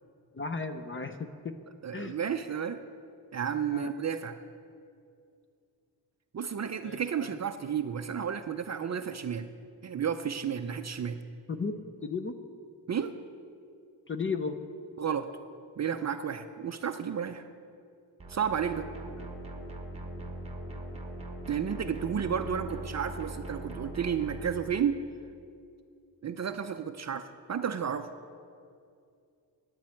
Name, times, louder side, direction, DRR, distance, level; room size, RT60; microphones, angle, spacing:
voice 1, 0.3-1.5 1.9-2.2 3.7-3.9 6.8-7.3 11.5-11.7 12.0-12.4 14.1-14.6 19.1-19.3, left 4 dB, 30° left, 9 dB, 0.5 m, -35 dB
voice 2, 1.8-2.8 3.3-4.4 6.3-9.5 9.8-11.2 12.9-13.2 15.0-15.3 15.8-17.5 18.3-18.9 21.5-25.0 26.2-28.1, right 8 dB, 40° right, 8 dB, 0.4 m, -32 dB
sound 1, 18.2-24.5, right 1 dB, 15° right, 1.1 m, -41 dB
9.4 x 7.4 x 8.8 m, 2.5 s
wide cardioid pair, 150°, 46 cm